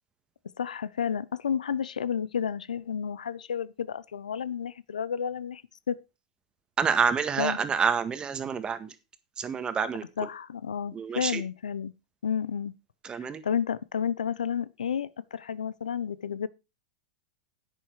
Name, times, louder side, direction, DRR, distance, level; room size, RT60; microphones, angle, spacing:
voice 1, 0.6-5.6 5.9-6.0 7.4-7.6 10.2-11.9 12.2-12.7 13.1-16.5, left 7 dB, 85° left, 0.7 m, -31 dB
voice 2, 6.8-8.9 9.4-10.0 10.9-11.4 13.0-13.4, right 6 dB, 20° right, 1.7 m, -27 dB
10.0 x 9.8 x 4.7 m
hypercardioid pair, 105°, 4 cm